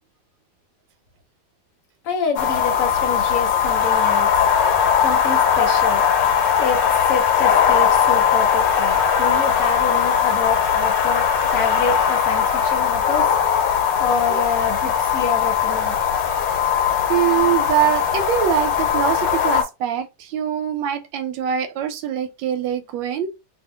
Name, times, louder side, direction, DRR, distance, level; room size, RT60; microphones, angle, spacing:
voice 1, 2.0-4.5 5.0-6.0 6.6-13.4 14.0-16.0, left 4 dB, 55° left, 1.0 m, -27 dB
sound 1, 2.4-19.6, left 8 dB, 80° left, 1.3 m, -19 dB
voice 2, 17.1-23.3, right 9 dB, 90° right, 1.3 m, -23 dB
2.8 x 2.5 x 3.2 m
omnidirectional pair, 2.0 m